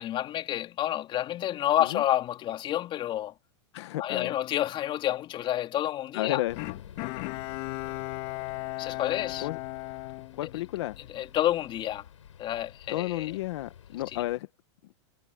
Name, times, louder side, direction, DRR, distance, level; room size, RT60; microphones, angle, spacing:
voice 1, 0.0-3.3 4.0-6.4 8.8-9.5 10.4-10.5 11.1-12.0 12.4-13.3 14.1-14.2, left 12 dB, 30° left, 3.4 m, -29 dB
voice 2, 3.7-4.3 6.1-6.6 9.4-9.6 10.3-11.0 12.9-14.5, left 16 dB, 65° left, 1.5 m, -32 dB
sound 1, 6.5-14.4, left 9 dB, 90° left, 5.4 m, -50 dB
Bowed string instrument, 6.6-11.1 11.5-11.6, left 24 dB, 50° left, 2.8 m, -36 dB
hypercardioid pair, 125°, 16 cm